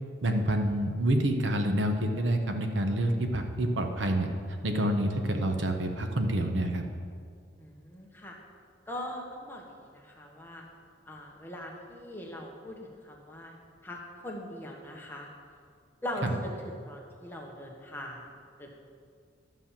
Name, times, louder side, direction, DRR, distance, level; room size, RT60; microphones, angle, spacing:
voice 1, 0.2-4.3 4.6-6.8, right 1 dB, 70° right, 4 dB, 1.0 m, -27 dB
voice 2, 7.6-8.4 8.9-10.7 11.1-13.5 13.8-15.3 16.0-18.2 18.6-18.7, left 1 dB, 10° left, -1 dB, 1.3 m, -41 dB
12.0 x 5.6 x 7.3 m, 2.1 s
head